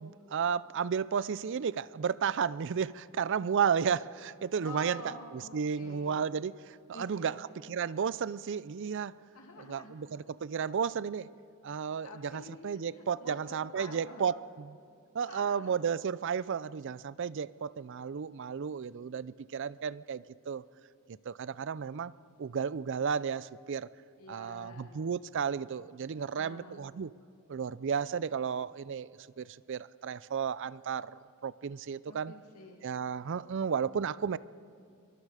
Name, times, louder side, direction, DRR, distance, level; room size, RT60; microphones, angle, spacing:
voice 1, 0.0-5.0 5.3-9.1 9.7-11.3 11.6-14.8 15.1-20.6 21.1-22.1 22.4-23.9 24.3-27.1 27.5-29.1 29.4-31.1 31.4-32.3 32.8-34.4, right 6 dB, 55° right, 19 dB, 0.4 m, -33 dB
voice 2, 4.6-6.2 6.9-7.4 9.3-9.9 12.0-14.3 15.3-15.7 24.2-24.9 26.1-26.9 32.1-32.8, left 2 dB, 85° left, 1 dB, 2.3 m, -48 dB
25.0 x 23.5 x 4.9 m, 2.4 s
head